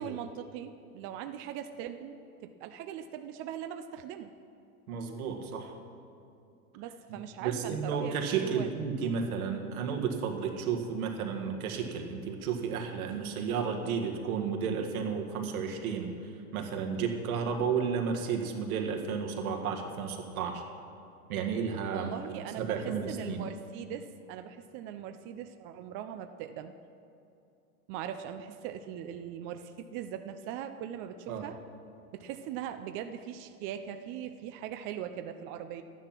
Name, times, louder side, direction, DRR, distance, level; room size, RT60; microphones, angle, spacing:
voice 1, 0.0-2.2 2.4-4.3 6.8-8.8 21.9-26.7 27.9-31.6 32.1-35.8, right 9 dB, 30° right, 8 dB, 0.4 m, -40 dB
voice 2, 4.9-5.7 7.1-16.1 16.5-20.6 21.3-22.1 22.6-23.4 31.3-31.4, right 6 dB, 70° right, 3 dB, 1.9 m, -32 dB
11.5 x 9.9 x 6.0 m, 2.7 s
hypercardioid pair, 120°, 44 cm